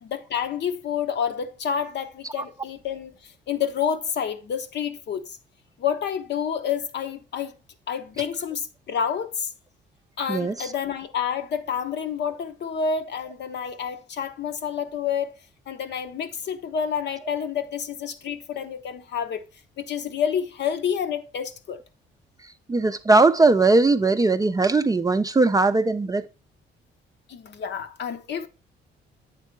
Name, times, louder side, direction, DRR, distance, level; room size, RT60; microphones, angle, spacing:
voice 1, 0.0-5.4 5.8-7.5 7.9-9.5 10.2-15.3 15.7-19.4 19.8-21.8 27.3-28.5, left 7 dB, 60° left, 0.8 m, -29 dB
voice 2, 10.3-10.7 22.4-26.3, right 3 dB, 20° right, 0.4 m, -20 dB
8.3 x 3.5 x 4.4 m
cardioid pair, 90°, 20 cm